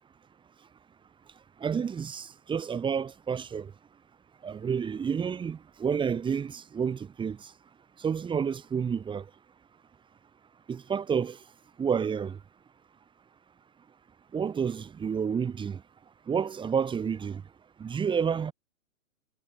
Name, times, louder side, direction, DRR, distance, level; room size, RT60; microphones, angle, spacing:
voice 1, 1.6-3.7 4.4-7.4 8.0-9.2 10.7-11.4 11.8-12.4 14.3-15.8 16.3-17.4 17.8-18.5, right 7 dB, 10° right, 1.7 m, -29 dB
hypercardioid pair, 130°, 43 cm